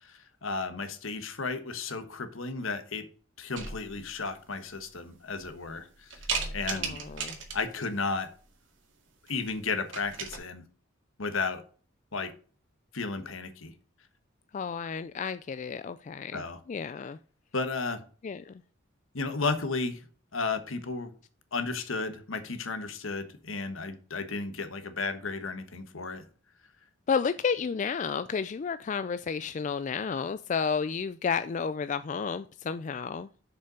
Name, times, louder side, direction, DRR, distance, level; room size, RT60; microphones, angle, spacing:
voice 1, 0.1-3.0 3.4-5.9 6.5-7.0 7.5-8.3 9.3-10.6 11.2-11.6 12.1-12.3 12.9-13.7 16.3-16.6 17.5-18.0 19.1-20.0 20.3-21.1 21.5-26.2, left 4 dB, 75° left, 1.3 m, -33 dB
sound 1, 3.5-4.1 4.7-4.8 5.3-5.7 6.1-7.8 9.3-9.5 9.8-10.4, right 5 dB, 60° right, 2.0 m, -35 dB
voice 2, 6.7-7.4 14.5-17.2 18.2-18.6 27.1-33.3, left 6 dB, 35° left, 0.3 m, -32 dB
6.9 x 5.5 x 5.2 m
head